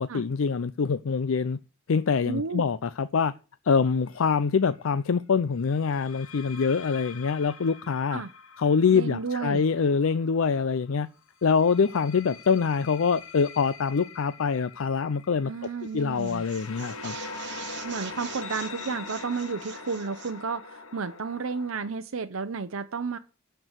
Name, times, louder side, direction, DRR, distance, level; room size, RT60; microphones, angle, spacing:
voice 1, 0.0-1.6 1.9-3.3 3.7-8.2 8.6-11.1 11.4-15.5 15.9-17.2, left 5 dB, 70° left, 0.5 m, -25 dB
voice 2, 2.3-2.6 8.1-8.3 8.9-9.6 15.4-16.4 17.8-23.2, right 5 dB, 80° right, 0.7 m, -32 dB
sound 1, 4.1-4.4 5.9-10.6 11.4-21.9, left 4 dB, 90° left, 1.3 m, -43 dB
sound 2, 15.6-15.9 16.2-20.4, right 9 dB, 60° right, 1.4 m, -44 dB
12.0 x 4.6 x 8.0 m
head